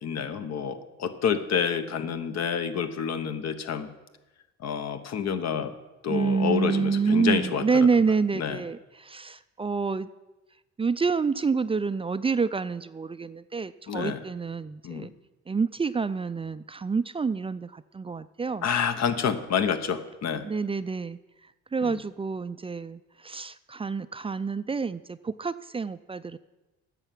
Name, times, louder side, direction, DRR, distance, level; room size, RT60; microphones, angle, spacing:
voice 1, 0.0-3.9 4.6-5.7 6.0-7.9 8.3-8.6 13.9-14.2 14.8-15.1 18.6-20.4 21.8-22.0, left 7 dB, 60° left, 9 dB, 1.1 m, -28 dB
voice 2, 6.1-10.1 10.8-15.1 15.5-18.7 20.4-21.2 21.7-26.4, right 5 dB, 20° right, 13 dB, 0.3 m, -28 dB
9.8 x 6.9 x 7.6 m, 1.1 s
cardioid pair, 90°, 30 cm